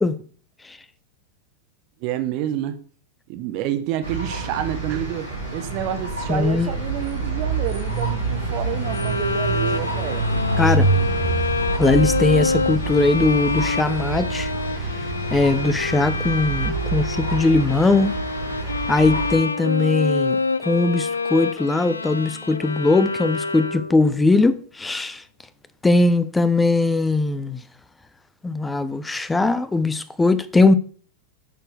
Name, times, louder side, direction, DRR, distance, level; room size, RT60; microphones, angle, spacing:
voice 1, 2.0-2.8 3.3-10.3, right 11 dB, 45° right, 0.8 m, -28 dB
sound 1, 4.0-19.4, right 3 dB, 85° right, 3.5 m, -26 dB
voice 2, 6.3-6.7 10.6-10.9 11.8-14.5 15.3-18.1 18.9-25.2 25.8-27.6 28.4-30.7, left 3 dB, 10° left, 0.6 m, -20 dB
Bowed string instrument, 8.8-24.1, left 4 dB, 75° left, 0.4 m, -27 dB
11.0 x 4.5 x 3.3 m
figure-of-eight pair, 90°, 0 cm